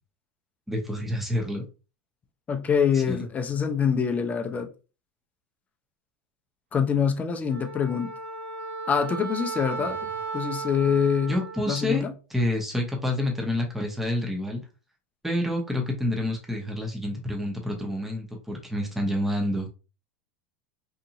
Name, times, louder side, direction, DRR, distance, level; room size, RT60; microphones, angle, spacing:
voice 1, 0.7-1.6 3.1-3.2 9.8-9.9 11.3-12.0 12.3-14.6 15.2-19.7, left 1 dB, 5° right, 0.8 m, -28 dB
voice 2, 2.5-4.7 6.7-8.1 8.9-10.0 10.3-11.3 11.7-12.1, left 7 dB, 25° left, 0.5 m, -25 dB
Wind instrument woodwind instrument, 7.5-11.9, right 4 dB, 80° right, 0.8 m, -35 dB
2.8 x 2.5 x 2.5 m
hypercardioid pair, 105°, 7 cm